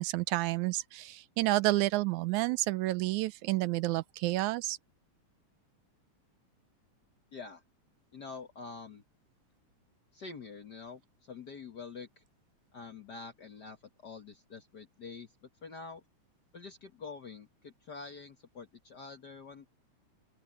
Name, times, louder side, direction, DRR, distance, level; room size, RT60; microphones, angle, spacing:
voice 1, 0.0-4.8, right 18 dB, 85° right, 2.0 m, -30 dB
voice 2, 7.3-7.6 8.1-9.0 10.1-12.2 12.7-13.8 14.0-16.0 16.5-19.6, left 4 dB, 50° left, 1.4 m, -46 dB
open air
omnidirectional pair, 3.5 m